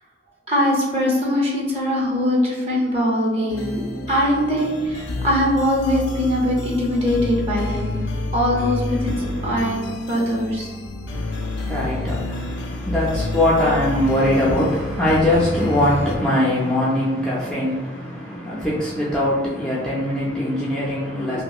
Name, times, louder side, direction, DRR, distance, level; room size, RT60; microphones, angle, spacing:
voice 1, 0.5-3.8 4.1-8.0 8.3-10.7 21.2-21.4, equal, 30° right, -3 dB, 0.7 m, -21 dB
sound 1, 3.5-16.2, left 2 dB, 70° left, 0.4 m, -29 dB
voice 2, 9.0-9.7 11.1-21.4, left 1 dB, 5° left, -7 dB, 0.3 m, -22 dB
2.8 x 2.7 x 2.3 m, 1.3 s
head